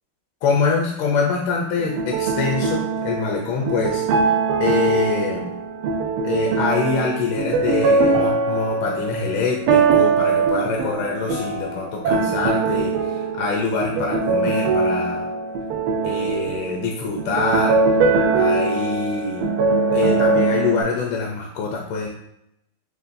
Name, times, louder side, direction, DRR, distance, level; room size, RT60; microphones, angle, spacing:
voice 1, 0.4-4.0 4.6-5.5 6.2-15.3 16.0-17.8 18.3-19.5 19.9-22.1, left 4 dB, 75° left, -1 dB, 1.4 m, -24 dB
sound 1, 1.8-20.8, right 4 dB, 80° right, 1.5 m, -21 dB
6.6 x 2.3 x 2.6 m, 0.77 s
omnidirectional pair, 2.4 m